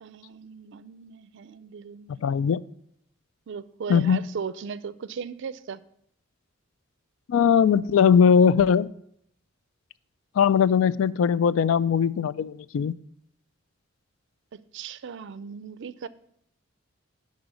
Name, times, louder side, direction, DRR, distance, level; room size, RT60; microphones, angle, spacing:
voice 1, 0.0-2.4 3.5-5.8 14.5-16.1, right 6 dB, 65° right, 0.4 m, -37 dB
voice 2, 2.2-2.6 3.9-4.2 7.3-8.9 10.4-12.9, left 7 dB, 75° left, 0.3 m, -20 dB
10.5 x 3.9 x 6.1 m
head